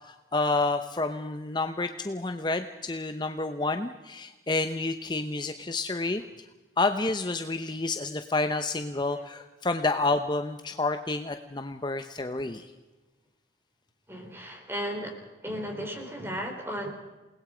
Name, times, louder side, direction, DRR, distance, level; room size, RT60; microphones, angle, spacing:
voice 1, 0.0-6.2 6.8-12.7, left 3 dB, 25° left, 8 dB, 0.8 m, -29 dB
voice 2, 14.1-16.9, equal, 15° right, 3 dB, 3.8 m, -35 dB
28.5 x 19.5 x 5.1 m, 1.2 s
head